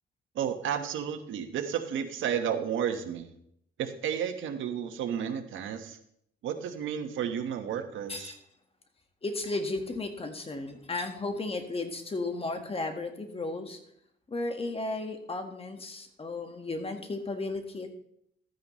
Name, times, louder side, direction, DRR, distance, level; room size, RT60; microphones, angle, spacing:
voice 1, 0.3-3.3 3.8-6.0 6.4-8.4, right 8 dB, 80° right, 7 dB, 1.3 m, -32 dB
voice 2, 9.2-13.8 14.3-17.9, left 2 dB, 30° left, 6 dB, 1.6 m, -34 dB
13.0 x 9.4 x 3.2 m, 0.71 s
cardioid pair, 90°, 20 cm